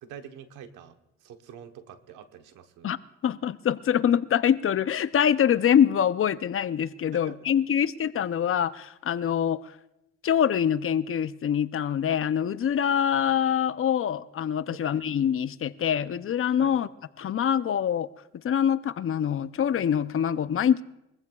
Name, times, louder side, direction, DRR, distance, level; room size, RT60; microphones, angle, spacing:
voice 1, 0.0-0.9 1.2-3.0 7.1-7.8 14.7-14.9 16.6-16.8, right 8 dB, 90° right, 1.2 m, -46 dB
voice 2, 3.2-9.6 10.2-16.9 17.2-18.1 18.4-20.8, left 9 dB, 45° left, 0.6 m, -24 dB
23.0 x 15.0 x 2.4 m
cardioid pair, 90°, 30 cm